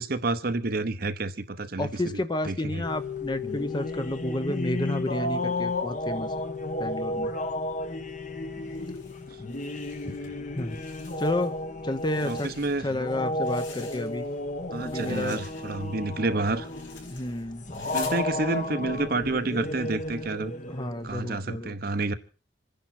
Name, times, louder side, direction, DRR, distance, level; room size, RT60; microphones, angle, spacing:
voice 1, 0.0-1.9 2.4-2.8 10.2-10.5 12.3-12.9 14.7-16.7 17.9-20.5 21.0-22.1, right 2 dB, 50° right, 0.9 m, -29 dB
voice 2, 1.8-6.3 6.8-7.3 10.0-10.2 10.6-10.8 11.2-11.5 11.8-12.5 12.8-14.3 14.8-15.4 17.1-17.7 20.7-21.8, left 1 dB, 25° left, 0.9 m, -31 dB
sound 1, 2.8-21.4, left 2 dB, 40° left, 1.2 m, -33 dB
sound 2, 8.6-10.3 10.6-11.6 11.9-14.4 14.7-18.2, left 5 dB, 80° left, 4.3 m, -48 dB
27.0 x 10.5 x 4.3 m
head